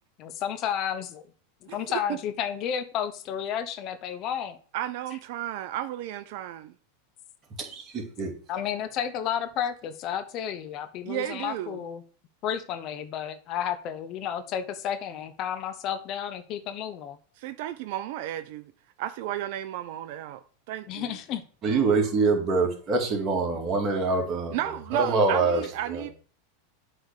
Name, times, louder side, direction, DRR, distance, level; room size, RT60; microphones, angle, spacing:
voice 1, 0.2-1.2 1.6-4.6 8.5-12.0 12.4-17.2 20.9-21.4, left 9 dB, 45° left, 0.8 m, -32 dB
voice 2, 1.7-2.2 4.7-6.7 11.1-11.8 17.4-18.7 19.0-21.2 24.5-26.1, right 12 dB, 60° right, 0.4 m, -33 dB
voice 3, 7.6-8.3 21.6-24.6 24.9-25.6 25.9-26.1, right 3 dB, 35° right, 2.2 m, -25 dB
7.9 x 3.3 x 6.5 m
hypercardioid pair, 105°, 0 cm